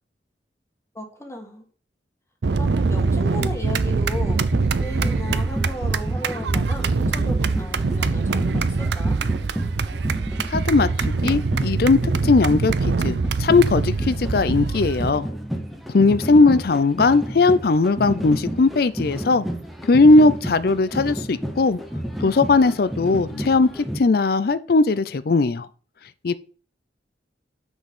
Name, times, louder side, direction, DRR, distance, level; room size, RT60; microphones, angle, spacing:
voice 1, 0.9-1.6 2.6-4.4 4.8-9.2 16.5-16.6, left 1 dB, 15° left, 1.5 m, -35 dB
sound 1, 2.4-15.1, right 4 dB, 70° right, 0.5 m, -23 dB
sound 2, 4.1-24.0, equal, ahead, 0.9 m, -32 dB
voice 2, 10.5-15.3 15.9-19.5 19.8-21.8 22.2-25.7 26.2-26.3, left 3 dB, 55° left, 0.4 m, -18 dB
6.2 x 5.3 x 6.0 m
head